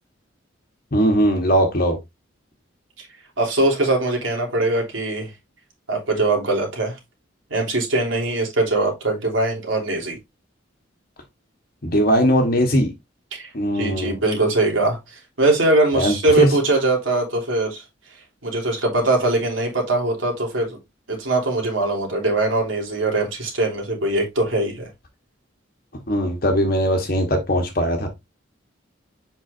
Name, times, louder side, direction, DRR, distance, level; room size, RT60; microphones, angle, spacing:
voice 1, 0.9-2.0 11.8-12.9 13.5-14.2 15.9-16.5 26.1-28.1, equal, 50° left, 1.2 m, -19 dB
voice 2, 3.4-5.3 5.9-7.0 7.5-10.2 13.3-13.5 13.7-17.8 18.4-20.8 21.1-24.9, right 2 dB, 90° right, 3.3 m, -21 dB
7.8 x 5.5 x 2.6 m
head